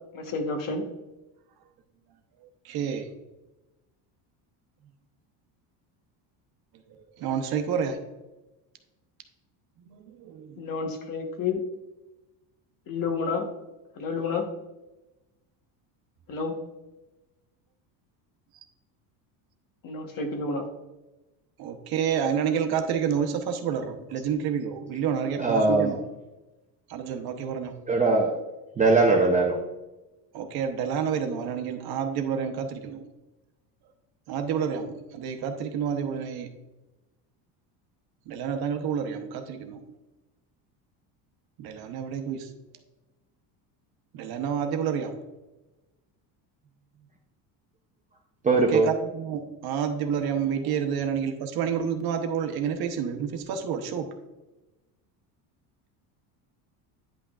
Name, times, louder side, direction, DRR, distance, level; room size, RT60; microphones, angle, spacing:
voice 1, 0.1-0.9 10.6-11.6 12.9-13.5 14.0-14.5 16.3-16.6 19.8-20.7, left 4 dB, 45° left, 4 dB, 1.2 m, -30 dB
voice 2, 2.6-3.1 7.2-8.0 9.9-10.6 21.6-26.0 26.9-27.7 30.3-33.0 34.3-36.5 38.3-39.8 41.6-42.5 44.1-45.2 48.6-54.1, right 7 dB, 55° right, 5 dB, 1.0 m, -29 dB
voice 3, 25.4-25.9 27.9-28.3 28.8-29.5 48.4-48.9, right 3 dB, 15° right, 0 dB, 0.6 m, -20 dB
10.0 x 5.7 x 2.4 m, 1.0 s
cardioid pair, 135°, 45 cm